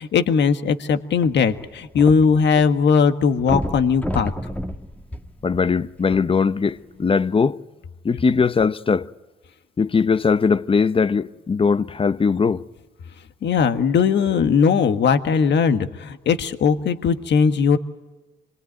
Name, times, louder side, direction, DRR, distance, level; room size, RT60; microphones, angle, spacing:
voice 1, 0.0-4.3 13.4-17.8, left 6 dB, 60° left, 1.6 m, -19 dB
sound 1, 1.2-2.6 2.9-3.0 3.4-6.0 6.7-6.8, equal, 5° left, 1.7 m, -30 dB
voice 2, 5.4-7.6 8.0-9.1 9.8-12.6, left 5 dB, 25° left, 0.8 m, -20 dB
26.5 x 22.0 x 9.3 m
cardioid pair, 90°, 20 cm